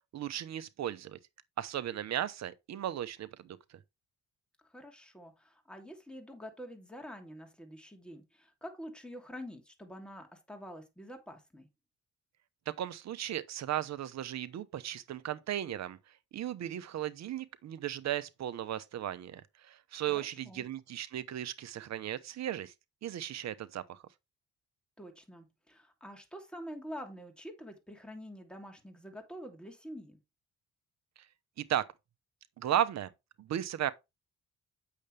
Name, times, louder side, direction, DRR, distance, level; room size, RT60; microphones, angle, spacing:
voice 1, 0.1-1.2 1.6-3.6 12.7-16.0 16.3-22.7 23.0-24.0 31.6-31.9 32.6-33.1 33.4-33.9, right 11 dB, 60° right, 0.9 m, -35 dB
voice 2, 4.6-11.7 20.1-20.7 25.0-30.2, equal, 5° left, 2.7 m, -47 dB
8.4 x 6.7 x 3.3 m
cardioid pair, 90°, 30 cm